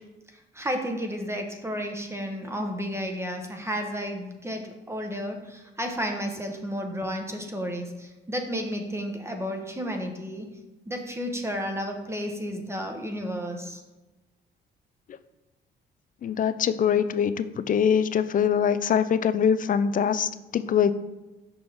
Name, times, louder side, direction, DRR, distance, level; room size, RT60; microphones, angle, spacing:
voice 1, 0.6-10.4 10.9-13.8, equal, 15° right, 3 dB, 0.9 m, -32 dB
voice 2, 16.2-20.9, left 8 dB, 45° left, 13 dB, 0.4 m, -23 dB
6.1 x 5.2 x 3.4 m, 1.1 s
cardioid pair, 90°, 20 cm